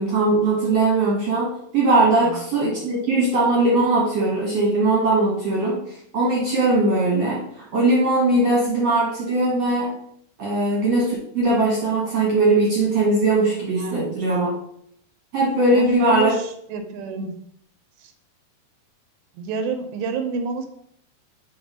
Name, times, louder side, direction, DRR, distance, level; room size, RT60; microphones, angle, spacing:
voice 1, 0.0-9.9 10.4-14.5 15.3-16.3 17.2-17.3, right 2 dB, 55° right, -5 dB, 1.9 m, -20 dB
voice 2, 13.8-14.2 15.7-17.4 18.0-18.1 19.3-20.7, right 4 dB, 85° right, 6 dB, 2.8 m, -29 dB
6.0 x 4.0 x 5.3 m, 0.70 s
omnidirectional pair, 4.9 m